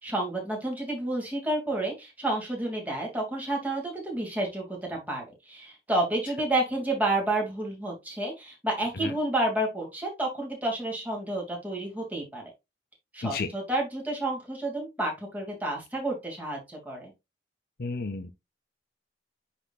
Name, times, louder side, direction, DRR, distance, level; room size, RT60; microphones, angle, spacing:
voice 1, 0.0-12.5 13.1-17.1, right 1 dB, 10° right, 2.6 m, -30 dB
voice 2, 17.8-18.3, left 3 dB, 55° left, 0.6 m, -32 dB
10.0 x 4.3 x 2.5 m
head